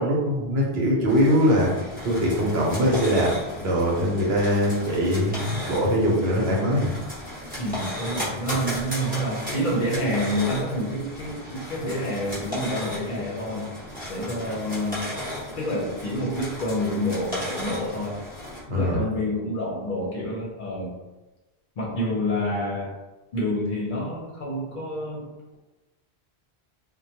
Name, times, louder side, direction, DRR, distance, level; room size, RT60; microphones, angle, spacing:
voice 1, 0.0-1.7 2.0-6.9 18.7-19.0, equal, 70° right, -3 dB, 0.9 m, -22 dB
sound 1, 1.1-18.6, equal, 10° right, 0.7 m, -35 dB
voice 2, 7.6-13.7 14.1-15.2 15.6-18.2 18.7-20.9 21.8-22.9 23.3-25.6, equal, 55° left, -4 dB, 0.7 m, -28 dB
2.2 x 2.2 x 2.7 m, 1.1 s
omnidirectional pair, 1.1 m